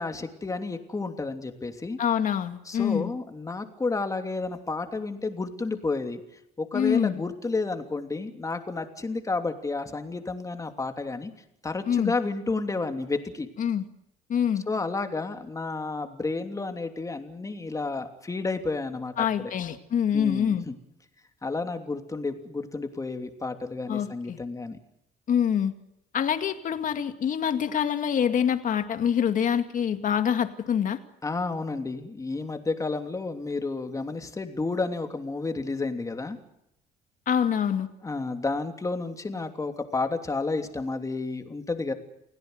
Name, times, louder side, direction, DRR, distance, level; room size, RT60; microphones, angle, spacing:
voice 1, 0.0-2.0 2.7-6.2 6.6-11.3 11.6-13.5 14.7-19.5 20.1-20.7 21.4-24.8 31.2-36.4 38.0-41.9, left 3 dB, 20° left, 6 dB, 3.0 m, -31 dB
voice 2, 2.0-3.1 6.7-7.2 11.9-12.1 13.6-13.9 14.3-14.7 19.2-20.7 23.9-24.4 25.3-25.7 26.1-31.0 37.3-37.9, left 8 dB, 50° left, 8 dB, 2.3 m, -25 dB
28.5 x 17.5 x 8.1 m, 0.81 s
cardioid pair, 110°, 17 cm